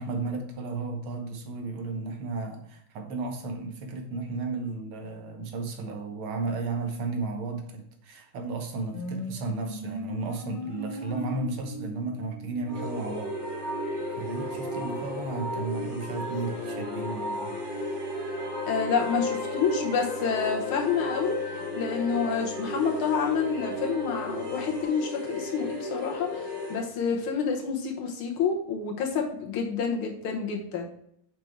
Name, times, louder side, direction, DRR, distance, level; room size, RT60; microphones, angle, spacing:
voice 1, 0.0-13.3 14.2-17.9, right 3 dB, 80° right, 4 dB, 2.0 m, -34 dB
sound 1, 8.9-24.8, right 1 dB, 35° left, 0.5 m, -41 dB
sound 2, 12.7-26.9, left 2 dB, 30° right, 3.2 m, -34 dB
voice 2, 18.7-21.4 21.8-30.9, left 6 dB, 85° left, 1 dB, 2.0 m, -28 dB
5.9 x 5.1 x 4.6 m, 0.69 s
omnidirectional pair, 2.3 m